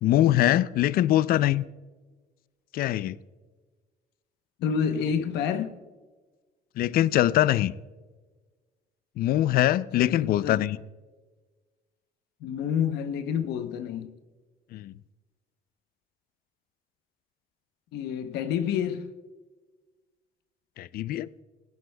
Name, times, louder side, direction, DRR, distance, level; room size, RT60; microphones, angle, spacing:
voice 1, 0.0-1.6 2.7-3.2 6.8-7.7 9.2-10.8 14.7-14.9 20.8-21.3, left 13 dB, 60° left, 0.4 m, -23 dB
voice 2, 4.6-5.7 10.0-10.6 12.4-14.1 17.9-19.1, left 7 dB, 80° left, 0.8 m, -28 dB
17.0 x 11.5 x 2.2 m
cardioid pair, 110°, 17 cm